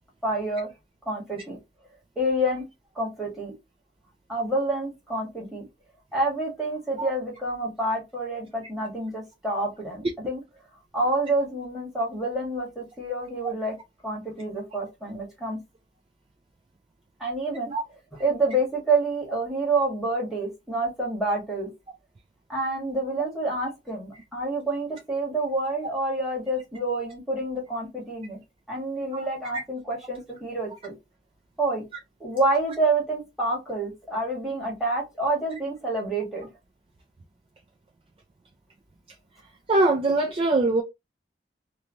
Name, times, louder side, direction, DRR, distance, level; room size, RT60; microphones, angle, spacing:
voice 1, 0.2-0.7 1.0-1.6 2.1-2.7 2.9-3.5 4.3-5.6 6.1-10.4 10.9-13.8 14.0-15.6 17.2-17.7 18.1-21.7 22.5-28.4 28.7-30.9 31.6-31.8 32.2-36.5, right 2 dB, ahead, 1.4 m, -28 dB
voice 2, 39.7-40.8, right 2 dB, 30° right, 0.3 m, -22 dB
3.0 x 2.2 x 2.5 m
head